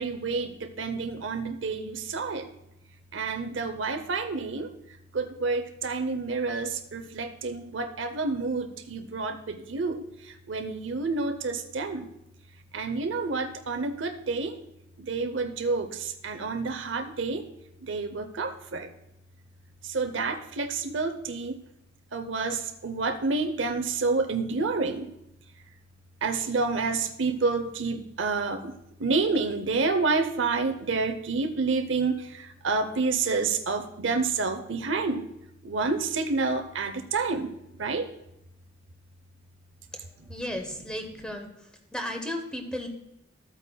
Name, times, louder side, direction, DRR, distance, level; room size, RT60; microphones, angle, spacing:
voice 1, 0.0-2.5 3.1-4.7 5.1-12.1 12.7-14.5 15.0-17.4 17.8-18.9 19.8-21.6 22.1-25.1 26.2-28.7 29.0-35.3 35.6-37.5 37.8-38.1, right 4 dB, 80° right, 7 dB, 0.7 m, -29 dB
voice 2, 40.3-41.5 41.9-42.9, left 1 dB, 5° left, 3 dB, 0.9 m, -34 dB
14.0 x 8.3 x 2.3 m, 0.84 s
head